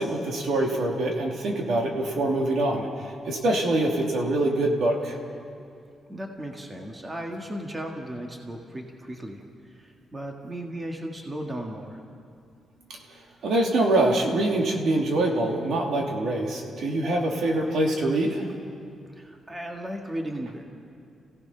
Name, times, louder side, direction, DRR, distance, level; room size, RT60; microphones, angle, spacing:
voice 1, 0.0-2.9 3.3-5.2 12.9-13.0 13.4-18.5, right 2 dB, 70° right, 0 dB, 2.7 m, -24 dB
voice 2, 6.1-12.0 19.1-20.6, right 1 dB, 15° right, 1 dB, 1.7 m, -36 dB
29.5 x 16.5 x 5.7 m, 2.5 s
wide cardioid pair, 150°, 0 cm